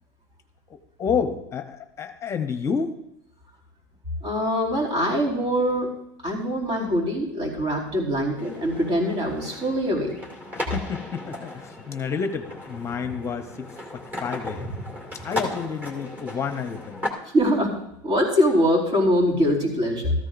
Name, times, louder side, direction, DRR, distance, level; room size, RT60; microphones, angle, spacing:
voice 1, 0.7-2.9 10.7-14.7 15.2-17.1, left 6 dB, 25° left, 7 dB, 0.9 m, -30 dB
voice 2, 4.2-5.9 6.2-10.1 17.3-17.7 18.0-20.1, equal, 45° right, -1 dB, 4.4 m, -23 dB
sound 1, 8.3-17.1, left 1 dB, 15° right, 2.3 m, -36 dB
14.0 x 14.0 x 2.6 m, 0.78 s
supercardioid pair, 130°, 11 cm